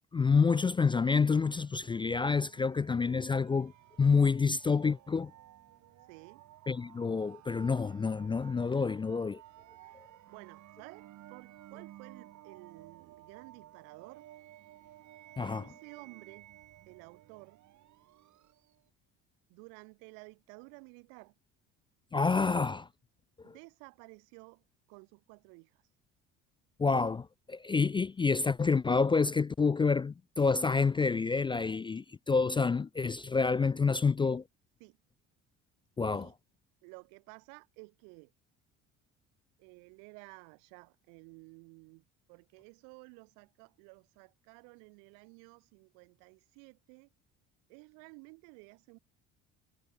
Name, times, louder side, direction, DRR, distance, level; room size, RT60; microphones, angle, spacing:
voice 1, 0.1-3.7 4.0-5.3 6.7-9.4 15.4-15.6 22.1-22.9 26.8-34.4 36.0-36.3, left 5 dB, 15° left, 0.3 m, -28 dB
sound 1, 1.4-18.9, right 14 dB, 65° right, 3.7 m, -55 dB
voice 2, 6.1-6.4 9.8-14.3 15.4-16.5 16.9-17.6 19.5-21.4 23.4-25.8 34.8-35.0 36.0-36.3 36.8-38.3 39.6-47.1 47.7-49.0, right 40 dB or more, 90° right, 6.7 m, -53 dB
supercardioid pair, 90°, 32 cm